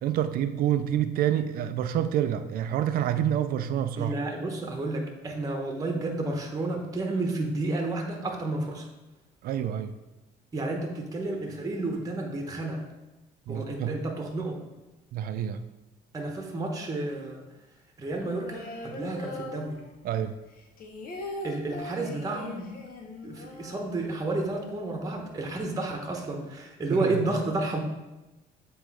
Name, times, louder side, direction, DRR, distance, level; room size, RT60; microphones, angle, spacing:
voice 1, 0.0-4.1 9.4-9.9 13.5-13.9 15.1-15.6 20.0-20.4 26.9-27.2, right 10 dB, 60° right, 10 dB, 0.4 m, -27 dB
voice 2, 4.0-8.9 10.5-12.8 13.5-14.6 16.1-17.4 18.0-19.8 21.4-22.8 23.2-27.8, right 2 dB, 20° right, 2 dB, 1.0 m, -31 dB
sound 1, 18.0-20.2 20.5-24.4 24.7-24.8 25.1-25.6, left 1 dB, 60° left, 1.0 m, -41 dB
7.7 x 3.1 x 4.8 m, 1.0 s
cardioid pair, 110°, 17 cm